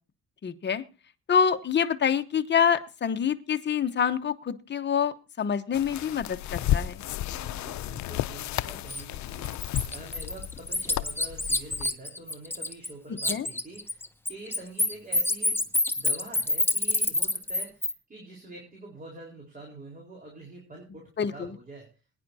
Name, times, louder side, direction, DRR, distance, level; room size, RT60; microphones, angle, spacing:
voice 1, 0.4-0.8 1.3-7.0 13.3-13.5 21.2-21.5, left 7 dB, 35° left, 8 dB, 0.9 m, -26 dB
sound 1, 5.7-11.9, left 13 dB, 70° left, 0.5 m, -33 dB
voice 2, 7.2-15.6 16.0-21.9, right 2 dB, 30° right, -1 dB, 4.2 m, -46 dB
Bird, 8.9-9.0 9.4-12.9 13.2-17.9, left 2 dB, 5° left, 0.9 m, -27 dB
21.5 x 9.8 x 2.7 m, 0.33 s
cardioid pair, 90°, 30 cm